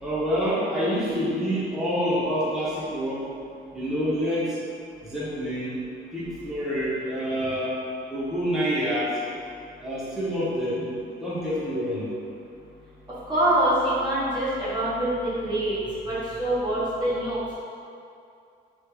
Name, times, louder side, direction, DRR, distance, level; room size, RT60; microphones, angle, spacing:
voice 1, 0.0-3.2 3.7-4.6 5.0-5.8 6.1-7.7 8.1-9.2 9.8-10.9 11.2-12.1, equal, ahead, -10 dB, 0.9 m, -27 dB
voice 2, 13.3-15.8 16.1-17.5, right 1 dB, 20° right, -11 dB, 0.9 m, -25 dB
3.2 x 3.1 x 2.3 m, 2.5 s
cardioid pair, 90°, 20 cm